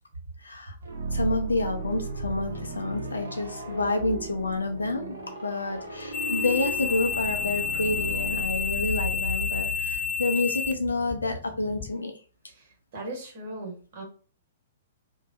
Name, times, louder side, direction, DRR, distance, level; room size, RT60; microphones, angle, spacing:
voice 1, 0.4-0.8 1.1-5.2 5.4-12.1, left 2 dB, 80° left, 4 dB, 0.6 m, -29 dB
sound 1, 0.8-10.6, right 1 dB, 70° right, 0.8 m, -35 dB
sound 2, 6.1-11.9, left 6 dB, 35° left, 0.3 m, -31 dB
voice 2, 12.5-14.0, right 2 dB, 45° right, 0 dB, 1.3 m, -39 dB
2.7 x 2.3 x 2.6 m, 0.40 s
figure-of-eight pair, 110°, 0 cm